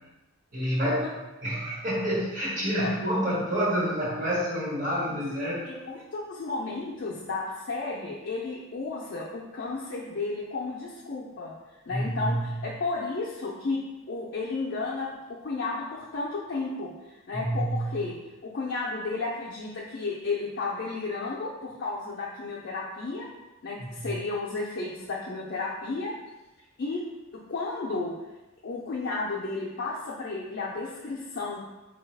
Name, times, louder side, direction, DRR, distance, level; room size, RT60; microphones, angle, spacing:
voice 1, 0.5-5.7 11.9-12.4 17.3-18.0 23.8-24.1, equal, 40° right, -7 dB, 1.2 m, -28 dB
voice 2, 5.6-11.5 11.9-13.8 14.1-18.1 18.4-23.3 23.6-26.1 26.8-27.0 27.3-28.1 28.6-31.6, left 3 dB, 50° left, -5 dB, 0.4 m, -33 dB
4.1 x 2.3 x 3.2 m, 1.1 s
head